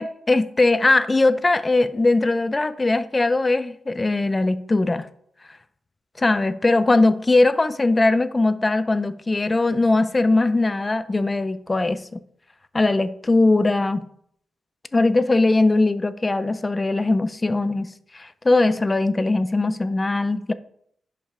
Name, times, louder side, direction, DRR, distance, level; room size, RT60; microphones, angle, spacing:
voice 1, 0.0-5.1 6.2-12.0 12.7-14.1 14.9-20.5, left 2 dB, 20° left, 0.6 m, -20 dB
10.5 x 5.5 x 5.0 m
cardioid pair, 115°, 0 cm